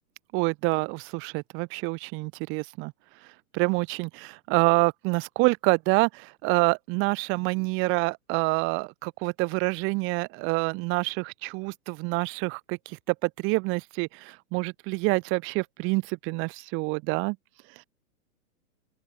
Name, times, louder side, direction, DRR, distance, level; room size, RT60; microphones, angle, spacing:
voice 1, 0.3-2.9 3.5-17.4, right 28 dB, 25° right, 0.8 m, -27 dB
open air
hypercardioid pair, 130°, 45 cm